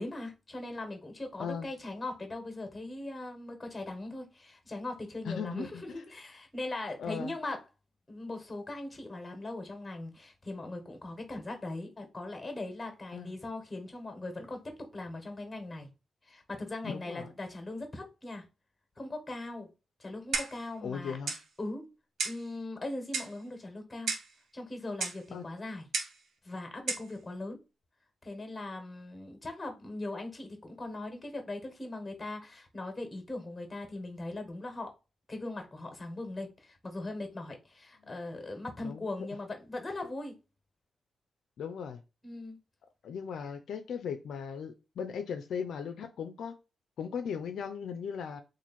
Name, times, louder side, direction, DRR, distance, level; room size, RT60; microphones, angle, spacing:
voice 1, 0.0-7.6 8.1-15.9 16.3-18.4 19.0-19.7 20.0-21.2 21.6-21.9 22.2-24.1 24.5-25.9 26.4-27.6 28.2-34.9 35.3-40.4 42.2-42.6, left 2 dB, 20° left, 1.3 m, -40 dB
voice 2, 5.3-5.7 7.0-7.3 13.1-13.3 16.8-17.3 20.8-21.3 25.3-25.4 38.1-38.2 38.8-39.1 41.6-42.0 43.0-46.6 47.0-48.4, left 7 dB, 80° left, 0.4 m, -37 dB
Clock, 20.3-20.7 21.3-21.5 22.2-22.5 23.1-23.4 24.1-24.3 25.0-25.2 25.9-26.2 26.9-27.1, right 4 dB, 75° right, 0.7 m, -33 dB
3.0 x 2.5 x 4.1 m
cardioid pair, 75°, 0 cm